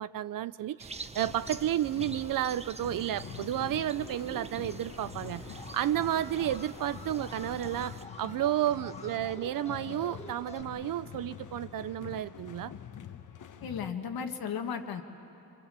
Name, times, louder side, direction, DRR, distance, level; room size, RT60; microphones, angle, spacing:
voice 1, 0.0-12.7, right 12 dB, 60° right, 0.5 m, -32 dB
sound 1, 0.8-8.1, right 3 dB, 15° right, 0.8 m, -46 dB
sound 2, 1.2-13.9, left 9 dB, 55° left, 1.1 m, -46 dB
Alarm, 5.5-10.6, left 2 dB, 15° left, 1.4 m, -48 dB
voice 2, 13.6-15.0, left 7 dB, 70° left, 1.5 m, -35 dB
25.5 x 25.0 x 7.5 m
cardioid pair, 105°, 37 cm